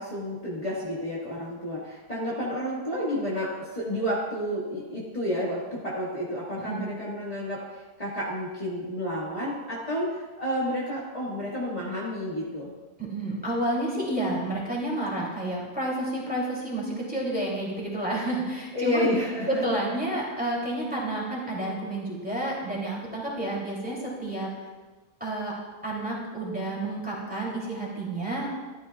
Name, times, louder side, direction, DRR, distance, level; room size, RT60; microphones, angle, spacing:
voice 1, 0.0-12.7 18.7-19.6, equal, 25° left, -8 dB, 1.8 m, -30 dB
voice 2, 13.0-19.1 19.5-24.5 25.2-25.5 25.8-28.5, right 1 dB, 5° right, -5 dB, 2.8 m, -30 dB
13.0 x 12.0 x 2.4 m, 1.3 s
omnidirectional pair, 1.6 m